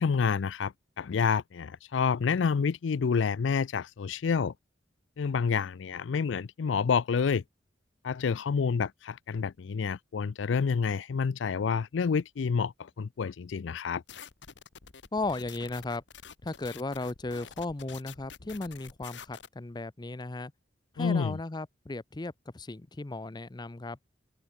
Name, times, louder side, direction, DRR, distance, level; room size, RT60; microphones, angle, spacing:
voice 1, 0.0-4.5 5.2-7.4 8.0-12.7 13.0-14.0 21.0-21.4, left 6 dB, 85° left, 0.4 m, -28 dB
sound 1, 14.1-19.5, left 7 dB, 70° left, 1.3 m, -48 dB
voice 2, 15.1-16.0 16.4-20.5 20.9-24.0, left 2 dB, 25° left, 0.6 m, -36 dB
open air
head